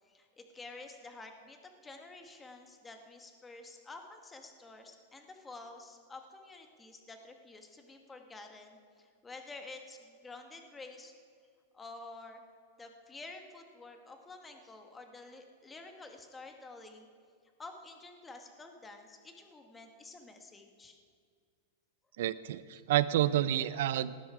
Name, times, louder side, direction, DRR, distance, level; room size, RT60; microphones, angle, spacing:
voice 1, 0.0-1.6 1.8-11.1 11.7-12.4 12.8-17.1 17.6-21.0, left 3 dB, 10° left, 4 dB, 1.2 m, -50 dB
voice 2, 22.2-24.2, right 12 dB, 70° right, 17 dB, 0.5 m, -29 dB
18.0 x 10.5 x 4.9 m, 2.1 s
supercardioid pair, 155°, 0 cm